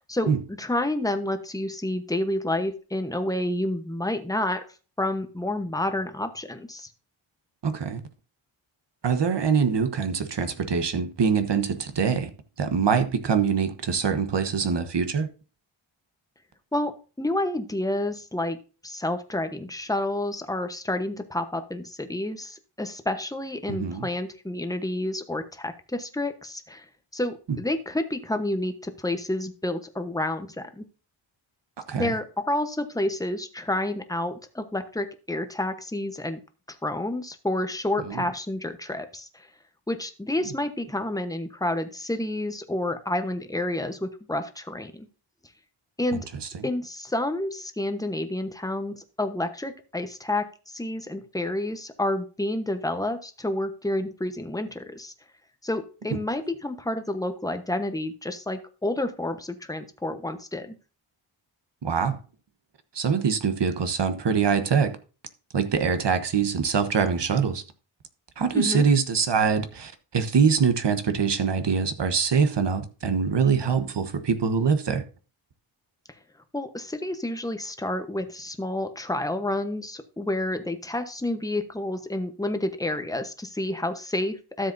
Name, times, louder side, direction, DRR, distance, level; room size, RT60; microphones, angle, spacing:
voice 1, 0.6-4.6 5.0-6.9 16.7-18.6 18.8-26.8 27.1-30.8 32.0-36.4 36.7-39.5 39.9-45.1 46.0-46.3 46.6-55.1 55.6-60.7 68.5-68.8 76.5-84.7, left 1 dB, 5° left, 1.0 m, -29 dB
voice 2, 7.6-8.0 9.0-12.3 12.6-15.3 23.7-24.1 27.5-27.6 31.9-32.1 38.0-38.3 46.1-46.2 46.5-46.7 61.8-62.2 62.9-64.9 65.5-67.6 68.4-75.0, right 6 dB, 55° right, 1.3 m, -24 dB
13.0 x 7.5 x 2.7 m
wide cardioid pair, 105°, 49 cm